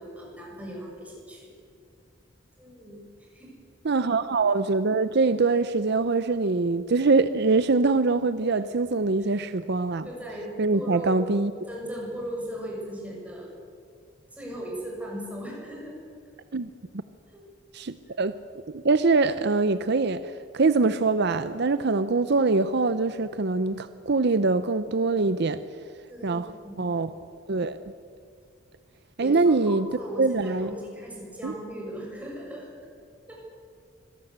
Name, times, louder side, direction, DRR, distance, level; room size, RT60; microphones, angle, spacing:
voice 1, 0.0-1.5 2.6-3.5 8.5-8.6 9.2-9.4 10.0-11.1 11.7-13.5 14.3-16.0 17.3-17.4 26.1-26.9 29.2-32.7 33.3-33.4, equal, 5° right, -2 dB, 6.7 m, -38 dB
voice 2, 3.8-10.1 10.6-11.5 16.5-16.7 17.7-18.3 18.7-25.6 26.2-26.5 26.8-27.1 27.5-27.8 29.2-29.9 30.2-30.7 31.4-31.5, right 3 dB, 55° right, 13 dB, 0.7 m, -23 dB
25.0 x 17.5 x 8.1 m, 2.3 s
head